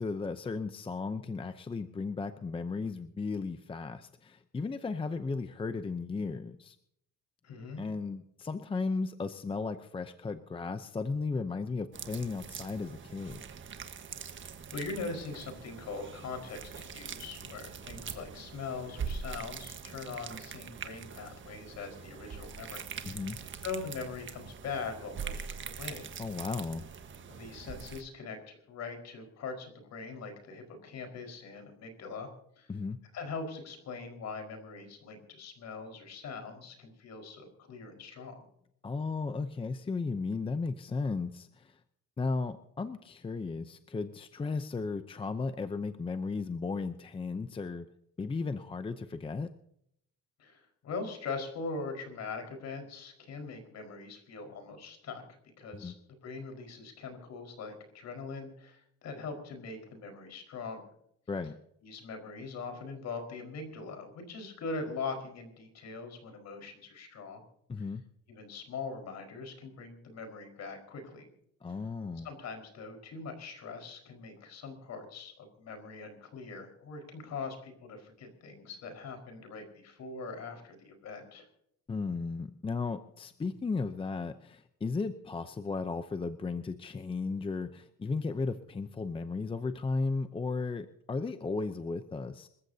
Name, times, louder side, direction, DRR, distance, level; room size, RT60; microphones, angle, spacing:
voice 1, 0.0-6.8 7.8-13.4 23.0-23.4 26.2-26.9 32.7-33.0 38.8-41.8 42.2-47.9 48.2-49.5 55.7-55.9 61.3-61.6 67.7-68.0 71.6-72.3 81.9-92.5, left 4 dB, 15° left, 9 dB, 0.7 m, -35 dB
voice 2, 7.4-7.8 14.7-23.2 23.6-26.1 27.3-32.7 33.1-38.5 50.4-55.3 55.6-60.8 61.8-67.4 67.8-67.9 68.3-71.3 72.2-81.5, left 4 dB, 55° left, 5 dB, 4.9 m, -42 dB
sound 1, 11.9-28.0, right 6 dB, 40° right, 1.4 m, -43 dB
27.0 x 14.5 x 2.8 m, 0.72 s
cardioid pair, 145°, 31 cm